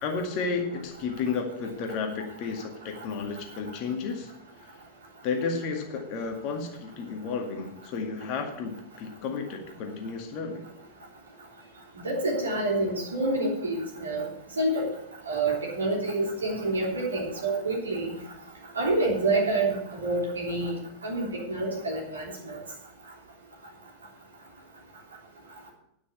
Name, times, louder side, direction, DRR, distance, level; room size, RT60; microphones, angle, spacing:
voice 1, 0.0-4.3 4.6-4.8 5.2-10.7, left 5 dB, 40° left, 3 dB, 2.0 m, -32 dB
voice 2, 12.0-14.2 14.6-14.9 15.3-18.1 18.7-20.7 21.0-22.6, right 2 dB, 70° right, -2 dB, 3.3 m, -27 dB
10.0 x 6.1 x 8.4 m, 0.81 s
figure-of-eight pair, 90°, 0 cm